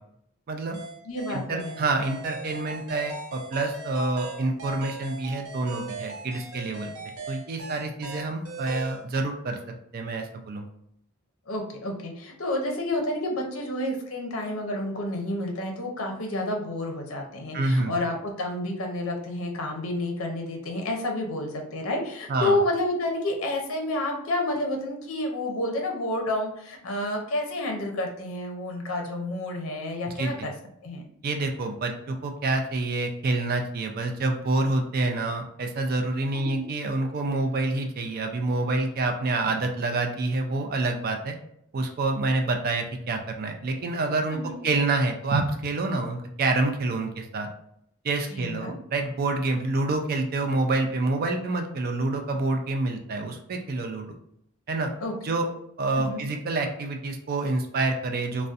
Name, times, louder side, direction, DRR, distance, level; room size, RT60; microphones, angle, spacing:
voice 1, 0.5-0.8 1.3-6.9 7.3-9.6 9.9-10.7 17.5-17.9 22.3-22.6 30.1-30.5 31.2-41.3 41.7-47.5 48.0-54.1 54.7-54.9 55.2-55.5 55.8-58.5, right 2 dB, 45° right, 4 dB, 0.3 m, -27 dB
sound 1, 0.7-9.0, right 3 dB, 85° right, 0.6 m, -39 dB
voice 2, 1.0-1.8 11.5-30.5 30.8-31.0 36.3-36.6 44.3-44.6 48.3-48.7 55.0-55.1 56.0-56.2, left 1 dB, 65° left, 2 dB, 0.6 m, -30 dB
2.5 x 2.1 x 2.3 m, 0.73 s
head